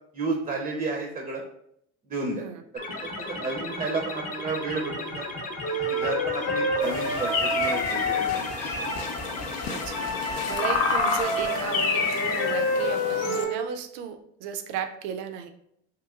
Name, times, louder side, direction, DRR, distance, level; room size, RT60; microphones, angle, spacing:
voice 1, 0.1-1.4 2.1-2.4 3.0-5.3 5.8-8.2, right 3 dB, 25° right, 1 dB, 0.5 m, -31 dB
sound 1, 2.8-12.5, left 2 dB, 25° left, 0.6 m, -35 dB
Wind instrument woodwind instrument, 5.6-9.1 9.9-13.7, left 1 dB, 60° left, 0.8 m, -29 dB
sound 2, 6.8-13.4, left 5 dB, 90° left, 0.5 m, -30 dB
voice 2, 9.7-15.5, right 8 dB, 75° right, 8 dB, 0.5 m, -35 dB
3.0 x 2.8 x 2.3 m, 0.72 s
supercardioid pair, 110°, 29 cm